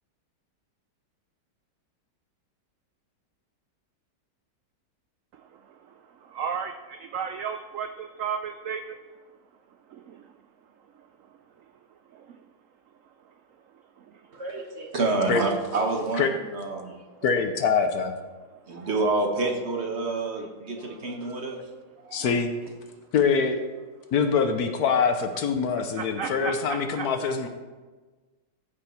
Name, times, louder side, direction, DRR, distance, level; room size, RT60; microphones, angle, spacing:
voice 1, 6.3-8.8 26.2-26.5 27.0-27.1, right 7 dB, 80° right, 8 dB, 0.7 m, -32 dB
voice 2, 14.3-17.1 18.7-21.6 22.0-22.3, right 3 dB, 45° right, 1 dB, 1.2 m, -28 dB
voice 3, 17.2-18.1 22.1-22.6 23.1-23.7 24.1-27.5, left 5 dB, 65° left, 7 dB, 1.2 m, -24 dB
14.5 x 5.1 x 4.4 m, 1.3 s
omnidirectional pair, 1.9 m